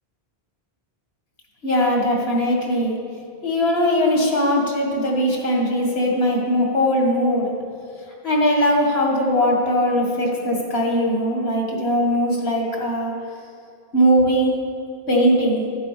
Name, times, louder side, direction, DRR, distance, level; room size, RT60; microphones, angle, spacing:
voice 1, 1.6-3.0 3.4-7.5 8.2-13.1 13.9-14.5 15.1-15.6, equal, 80° left, -1 dB, 2.2 m, -20 dB
13.5 x 7.7 x 5.1 m, 2.5 s
omnidirectional pair, 1.1 m